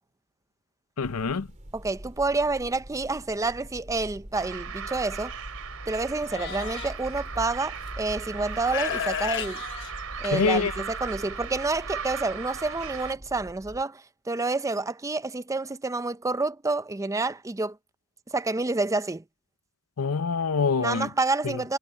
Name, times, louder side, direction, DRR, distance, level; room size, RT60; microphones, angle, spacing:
voice 1, 1.0-1.5 10.2-10.7 20.0-21.1 21.4-21.8, left 5 dB, 75° left, 0.7 m, -26 dB
sound 1, 1.0-13.8, equal, 30° right, 2.7 m, -43 dB
voice 2, 1.7-5.3 5.9-9.6 10.2-17.8 18.3-19.2 20.8-21.8, right 3 dB, 15° right, 0.5 m, -28 dB
sound 2, 4.3-13.1, right 7 dB, 70° right, 4.1 m, -38 dB
Livestock farm animals working animals, 6.3-6.9 7.9-8.0 8.6-10.7, left 8 dB, 60° left, 1.2 m, -33 dB
head